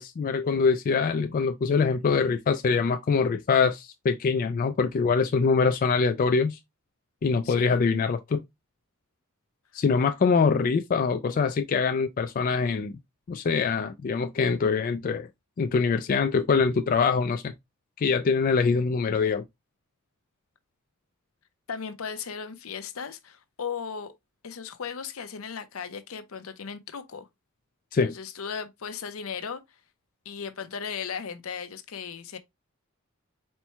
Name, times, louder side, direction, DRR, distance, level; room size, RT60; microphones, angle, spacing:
voice 1, 0.0-6.6 7.2-8.4 9.7-13.0 13.3-15.3 15.6-17.5 18.0-19.4 27.9-28.2, left 5 dB, 40° left, 0.3 m, -24 dB
voice 2, 7.4-7.8 21.7-24.1 24.4-27.3 28.0-29.6 30.2-32.4, left 6 dB, 70° left, 0.6 m, -36 dB
4.3 x 2.2 x 4.3 m
head